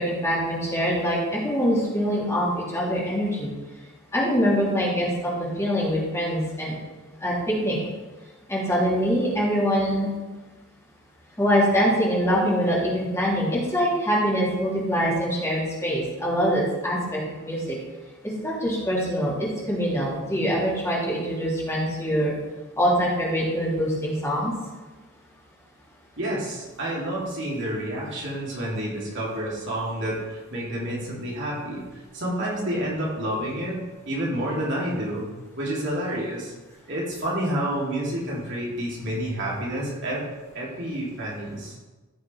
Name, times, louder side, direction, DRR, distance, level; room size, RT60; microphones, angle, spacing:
voice 1, 0.0-3.5 4.1-6.8 7.2-7.8 8.5-10.1 11.4-17.8 18.2-22.3 22.8-24.5, equal, 15° left, -6 dB, 2.6 m, -24 dB
voice 2, 26.2-35.3 35.5-36.5 36.9-40.2 40.5-41.8, right 1 dB, 60° right, -5 dB, 3.0 m, -29 dB
14.5 x 4.9 x 4.6 m, 1.2 s
head